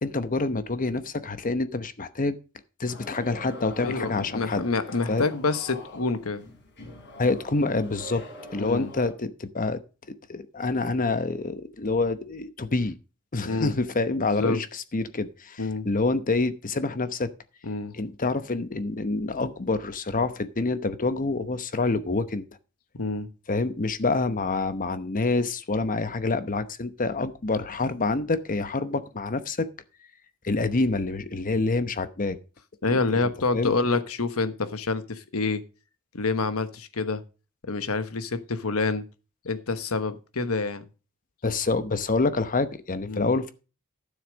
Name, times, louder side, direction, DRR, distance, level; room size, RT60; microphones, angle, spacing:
voice 1, 0.0-2.3 2.8-4.6 5.1-5.2 7.2-8.2 8.5-9.8 10.3-13.0 13.3-17.3 17.9-22.4 23.5-29.7 30.4-32.4 33.2-33.7 41.4-43.5, left 3 dB, 40° left, 0.9 m, -27 dB
sound 1, 2.9-9.1, left 1 dB, 55° left, 3.6 m, -44 dB
voice 2, 3.8-6.4 8.6-8.9 13.4-13.8 14.2-14.6 15.6-15.9 17.6-18.0 22.9-23.3 32.8-35.6 36.1-37.2 37.7-39.0 39.4-40.9 43.1-43.3, left 3 dB, 75° left, 1.2 m, -27 dB
12.5 x 7.1 x 5.2 m
head